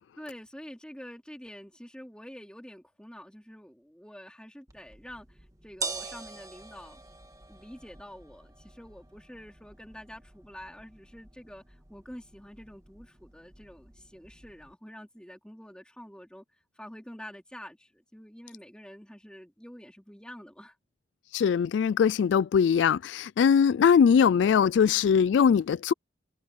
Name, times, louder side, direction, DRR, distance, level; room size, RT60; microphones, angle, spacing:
voice 1, 0.2-7.0 7.5-16.4 16.7-20.8, equal, 5° left, 3.5 m, -47 dB
sound 1, 4.7-14.7, right 4 dB, 20° right, 1.7 m, -45 dB
voice 2, 21.3-25.9, left 7 dB, 85° left, 0.3 m, -21 dB
head